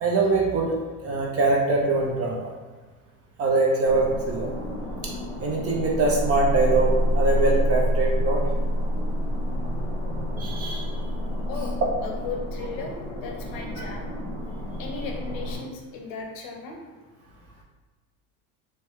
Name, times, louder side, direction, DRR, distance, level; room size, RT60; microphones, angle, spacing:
voice 1, 0.0-2.5 3.4-4.5 5.0-5.1 5.4-8.4 10.4-10.9, right 3 dB, 35° right, -1 dB, 0.5 m, -23 dB
sound 1, 3.8-15.6, equal, 10° left, 0.9 m, -28 dB
voice 2, 12.0-14.1 14.8-16.8, left 4 dB, 50° left, 1 dB, 0.7 m, -36 dB
3.0 x 2.2 x 2.9 m, 1.4 s
supercardioid pair, 105°, 45 cm